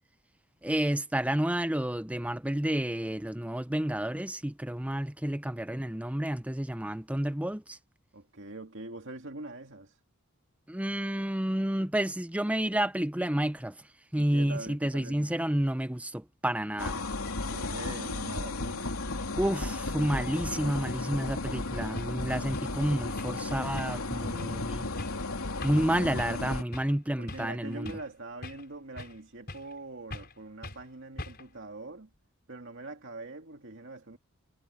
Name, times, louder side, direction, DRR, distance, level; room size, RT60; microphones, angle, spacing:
voice 1, 0.6-7.8 10.7-13.8 14.1-17.0 19.4-24.9 25.6-27.9, right 1 dB, 5° right, 0.7 m, -30 dB
voice 2, 8.1-9.9 14.1-15.3 16.8-17.0 17.5-18.8 27.1-32.1 32.5-34.2, right 2 dB, 60° right, 2.4 m, -43 dB
sound 1, 16.8-26.6, left 2 dB, 90° left, 3.0 m, -34 dB
sound 2, 21.5-21.6 22.0-22.2 22.5-22.8 23.2-23.5 23.8-24.1 24.4-24.6 25.0-25.2 25.6-25.9 26.2-26.4 26.7-27.0 27.3-28.1 28.4-29.2 29.5-29.8 30.1-30.4 30.6-30.8 31.2-31.6, left 2 dB, 45° left, 5.2 m, -42 dB
head